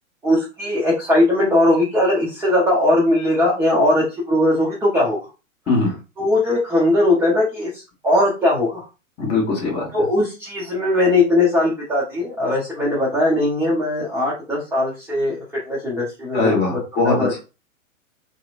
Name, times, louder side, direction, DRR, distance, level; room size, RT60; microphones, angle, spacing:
voice 1, 0.2-5.2 6.2-7.7 8.0-8.8 9.9-16.8 17.1-17.4, left 1 dB, 5° right, -8 dB, 0.6 m, -19 dB
voice 2, 9.2-9.9 16.3-17.4, left 3 dB, 25° left, -1 dB, 1.2 m, -20 dB
2.8 x 2.1 x 2.4 m, 0.29 s
figure-of-eight pair, 110°, 39 cm